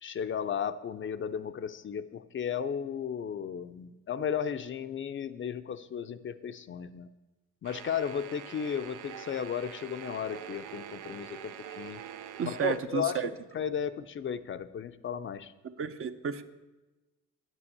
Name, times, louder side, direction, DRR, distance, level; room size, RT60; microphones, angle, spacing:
voice 1, 0.0-7.1 7.6-12.0 12.4-15.5, left 7 dB, 40° left, 11 dB, 0.5 m, -35 dB
sound 1, 7.6-12.8, right 9 dB, 85° right, 0.6 m, -45 dB
voice 2, 12.4-13.3 15.6-16.4, right 8 dB, 45° right, 10 dB, 0.7 m, -32 dB
9.0 x 6.1 x 7.9 m, 1.1 s
cardioid pair, 90°, 30 cm